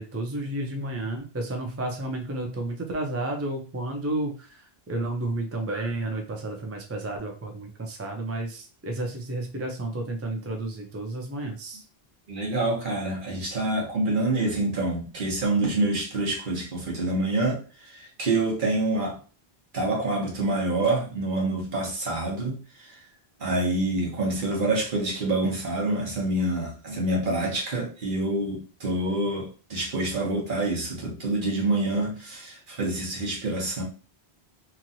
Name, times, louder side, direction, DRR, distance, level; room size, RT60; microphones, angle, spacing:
voice 1, 0.0-11.8, right 2 dB, 25° right, 0.3 m, -31 dB
voice 2, 12.3-19.2 19.7-23.0 23.4-33.8, right 2 dB, 55° right, 1.1 m, -27 dB
3.0 x 2.5 x 2.6 m
omnidirectional pair, 1.1 m